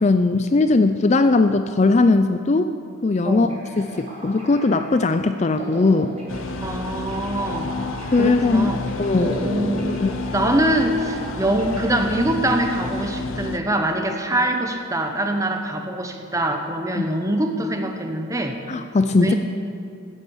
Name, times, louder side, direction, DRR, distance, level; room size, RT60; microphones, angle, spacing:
voice 1, 0.0-2.7 3.0-3.5 3.8-6.1 8.1-8.7 9.0-9.4 9.9-10.1 17.0-17.1 18.7-19.3, left 3 dB, 35° left, 9 dB, 0.4 m, -19 dB
voice 2, 3.2-3.6 6.6-7.7 8.2-8.8 9.2-9.9 10.3-18.6 19.2-19.3, right 1 dB, 15° right, 5 dB, 1.1 m, -23 dB
sound 1, 3.5-13.9, equal, 35° right, 4.1 m, -37 dB
sound 2, 6.3-13.6, left 3 dB, 75° left, 0.7 m, -31 dB
15.5 x 10.0 x 7.1 m, 2.4 s
head